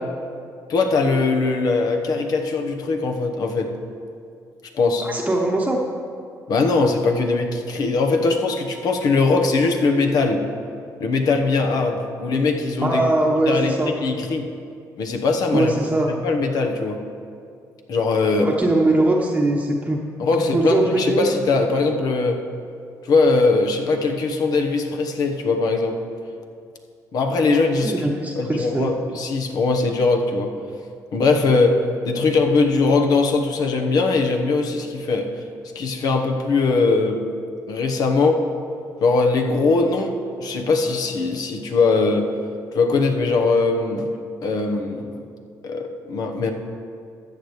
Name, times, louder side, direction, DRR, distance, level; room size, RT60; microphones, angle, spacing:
voice 1, 0.7-3.7 4.7-5.1 6.5-10.4 11.0-13.2 13.5-14.4 15.0-15.7 16.1-17.0 17.9-18.5 20.2-22.4 23.1-26.0 27.1-27.9 28.4-30.5 31.1-31.8 32.0-35.3 35.7-37.2 37.7-38.4 39.0-42.3 42.7-44.1 44.4-45.2 45.6-46.5, left 3 dB, 65° left, 4 dB, 1.1 m, -20 dB
voice 2, 5.0-5.8 12.8-13.9 15.5-16.1 18.4-20.0 20.5-21.3 27.8-28.9, right 2 dB, 20° right, -2 dB, 1.0 m, -21 dB
13.5 x 8.2 x 3.2 m, 2.3 s
cardioid pair, 85°, 7 cm